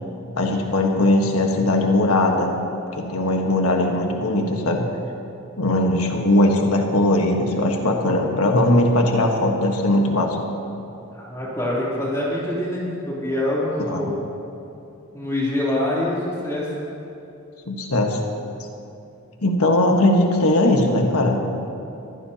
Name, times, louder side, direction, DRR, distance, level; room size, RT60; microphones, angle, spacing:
voice 1, 0.4-2.5 2.9-4.9 5.6-10.4 13.8-14.1 17.7-18.2 19.4-21.4, left 1 dB, 90° left, 2 dB, 1.5 m, -19 dB
voice 2, 11.1-14.2 15.1-16.7, left 1 dB, 15° left, -7 dB, 3.2 m, -25 dB
23.5 x 15.0 x 2.9 m, 2.7 s
head